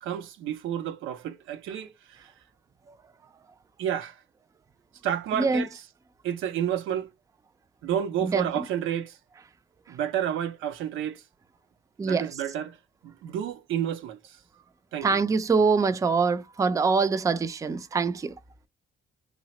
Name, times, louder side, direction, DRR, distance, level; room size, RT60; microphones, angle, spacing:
voice 1, 0.0-2.3 3.8-4.2 5.0-5.7 6.2-7.1 7.8-9.2 9.9-11.2 12.0-12.8 13.0-14.4 14.9-15.1, right 10 dB, 85° right, 0.5 m, -30 dB
voice 2, 15.0-18.3, right 4 dB, 15° right, 0.3 m, -24 dB
3.1 x 2.0 x 2.8 m
cardioid pair, 90°, 20 cm